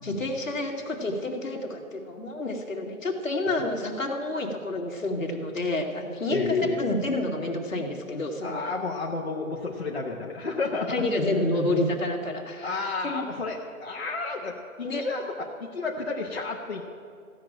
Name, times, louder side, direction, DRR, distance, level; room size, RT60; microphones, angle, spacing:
voice 1, 0.0-8.6 10.9-13.2 14.8-15.1, left 2 dB, 60° left, 1 dB, 1.9 m, -29 dB
voice 2, 6.3-6.9 8.4-11.2 12.6-16.8, left 3 dB, 45° left, -3 dB, 1.0 m, -31 dB
15.5 x 6.3 x 8.7 m, 2.2 s
hypercardioid pair, 180°, 44 cm